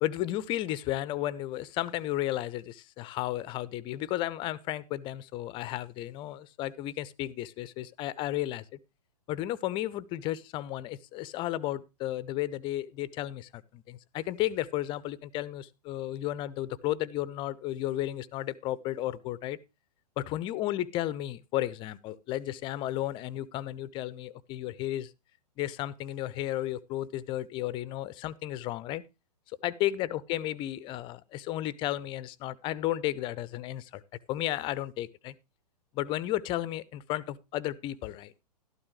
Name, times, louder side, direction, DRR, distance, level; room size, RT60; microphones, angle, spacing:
voice 1, 0.0-8.8 9.3-19.6 20.2-25.1 25.6-29.0 29.6-34.0 34.3-35.3 35.9-38.3, left 14 dB, 25° left, 0.6 m, -33 dB
12.5 x 12.0 x 3.1 m
figure-of-eight pair, 110°, 21 cm